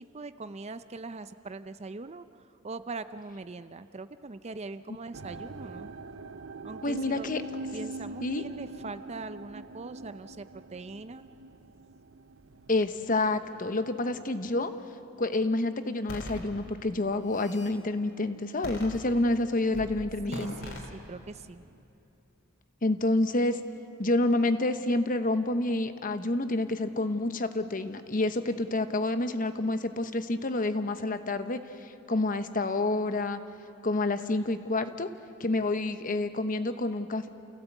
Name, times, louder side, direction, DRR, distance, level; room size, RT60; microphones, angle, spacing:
voice 1, 0.1-2.3 2.6-5.9 6.6-7.3 7.7-11.3 20.3-21.8, right 3 dB, 30° right, 12 dB, 0.5 m, -41 dB
sound 1, 5.1-16.3 16.6-17.2 17.8-17.9, right 2 dB, 70° right, 0.7 m, -44 dB
voice 2, 6.8-7.4 8.2-8.4 12.7-14.7 15.2-20.5 22.8-23.6 24.0-33.4 33.8-35.1 35.4-37.3, left 2 dB, 40° left, 10 dB, 1.0 m, -28 dB
sound 2, 16.1-16.4 17.1-17.7 18.6-19.4 19.7-19.9 20.3-20.9, left 1 dB, 70° left, 3.8 m, -40 dB
29.0 x 16.5 x 8.2 m, 2.9 s
head